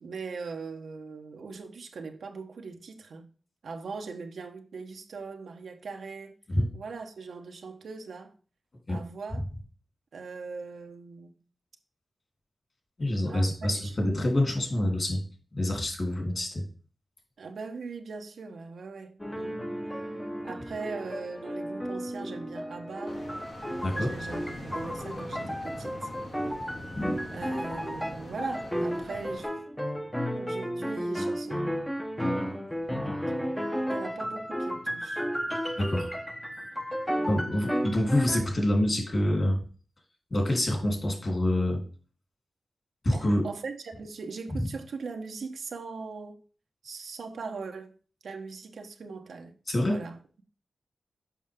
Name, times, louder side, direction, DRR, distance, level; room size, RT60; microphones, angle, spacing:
voice 1, 0.0-3.2 3.6-6.4 6.7-8.3 8.9-9.4 10.1-11.3 13.2-13.9 17.4-19.6 20.2-23.2 23.9-26.1 27.3-29.5 30.3-31.6 33.9-35.3 35.8-36.0 37.2-37.4 43.4-46.4 46.8-47.9 48.2-49.5 49.8-50.2, right 4 dB, 80° right, 1.1 m, -40 dB
voice 2, 13.0-15.2 15.5-16.6 23.8-24.2 26.9-27.2 35.8-36.1 37.3-39.6 40.3-41.8 43.0-43.5 44.6-44.7 49.7-50.0, left 1 dB, 45° left, 3.3 m, -26 dB
sound 1, 19.2-38.4, equal, 5° left, 0.9 m, -33 dB
sound 2, 23.0-29.5, equal, 75° left, 3.8 m, -42 dB
7.2 x 5.5 x 3.6 m
cardioid pair, 75°, 0 cm